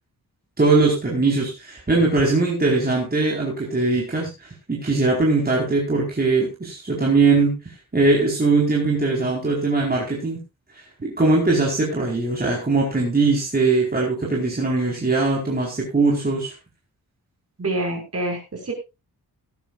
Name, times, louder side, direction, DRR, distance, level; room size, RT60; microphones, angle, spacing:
voice 1, 0.6-7.6 7.9-10.4 11.0-16.5, right 3 dB, 25° right, -3 dB, 4.7 m, -20 dB
voice 2, 17.6-18.7, right 1 dB, 40° right, 2 dB, 5.9 m, -26 dB
17.5 x 12.5 x 2.6 m, 0.27 s
wide cardioid pair, 135°, 37 cm